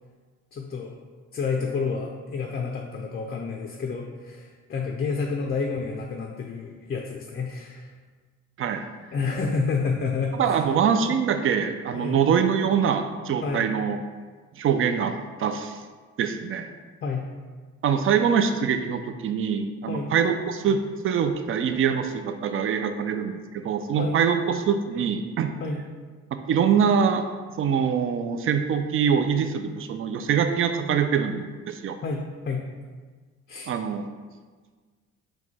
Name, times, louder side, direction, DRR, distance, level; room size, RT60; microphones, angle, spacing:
voice 1, 0.5-0.9 1.3-7.9 9.1-10.7 11.9-12.2 13.4-13.7 17.0-17.3 19.9-20.1 24.0-24.2 25.6-25.8 32.0-32.7 33.5-33.7, left 4 dB, 35° left, 1 dB, 0.4 m, -29 dB
voice 2, 10.4-14.0 14.6-15.8 16.2-16.7 17.8-20.8 21.0-25.5 26.5-27.3 27.6-32.0 33.7-34.1, right 7 dB, 45° right, 8 dB, 0.4 m, -24 dB
4.6 x 2.2 x 4.1 m, 1.5 s
cardioid pair, 90°, 30 cm